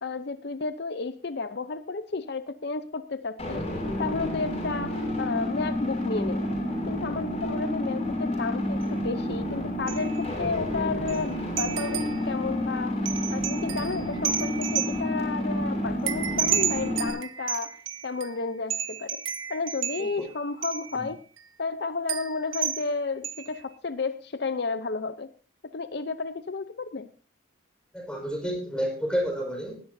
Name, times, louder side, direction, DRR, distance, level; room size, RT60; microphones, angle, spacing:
voice 1, 0.0-3.6 4.0-6.6 6.9-17.8 18.0-19.2 19.5-21.2 21.6-25.3 25.7-27.1, left 4 dB, 55° left, 11 dB, 0.6 m, -32 dB
sound 1, 3.4-17.1, left 1 dB, 30° left, 6.3 m, -30 dB
sound 2, 8.8-8.9 9.9-10.3 10.5-10.6 11.1-11.2 11.6-12.3 13.0-15.2 16.1-18.4 18.7-20.3 20.6-21.0 21.4-21.5 22.1-22.9 23.2-23.6, right 9 dB, 85° right, 1.1 m, -32 dB
voice 2, 27.9-29.8, equal, 5° left, 1 dB, 5.2 m, -30 dB
19.0 x 13.0 x 2.7 m, 0.37 s
head